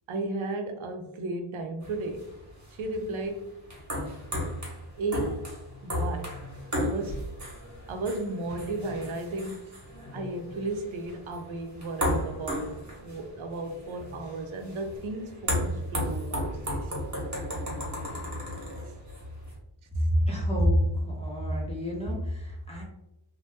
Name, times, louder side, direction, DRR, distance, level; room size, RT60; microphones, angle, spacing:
voice 1, 0.1-2.3 2.7-3.5 5.0-5.5 5.8-6.4 6.7-7.2 7.9-9.8 10.1-12.8 13.0-16.9 18.8-18.9, right 2 dB, 90° right, 5 dB, 0.6 m, -34 dB
sound 1, 1.8-19.6, equal, 40° right, 1.1 m, -35 dB
voice 2, 20.1-22.8, equal, 15° left, -4 dB, 0.6 m, -27 dB
2.7 x 2.1 x 3.3 m, 0.87 s
wide cardioid pair, 135°, 46 cm